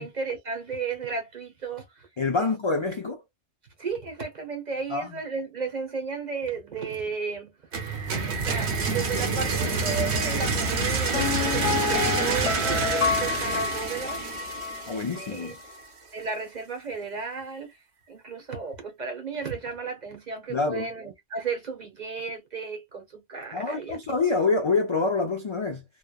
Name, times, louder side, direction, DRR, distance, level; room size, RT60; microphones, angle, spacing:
voice 1, 0.0-2.1 2.4-2.5 3.8-7.5 8.0-14.2 15.1-15.5 16.1-17.8 18.1-24.2, right 5 dB, 45° right, 0.9 m, -34 dB
voice 2, 2.2-3.2 4.9-5.1 14.9-15.6 20.5-20.9 23.5-25.8, left 4 dB, 55° left, 0.3 m, -26 dB
sound 1, 7.7-15.5, right 4 dB, 75° right, 1.0 m, -28 dB
Piano, 11.1-14.9 15.2-15.3, left 6 dB, 85° left, 1.1 m, -29 dB
3.0 x 2.0 x 2.2 m
omnidirectional pair, 1.1 m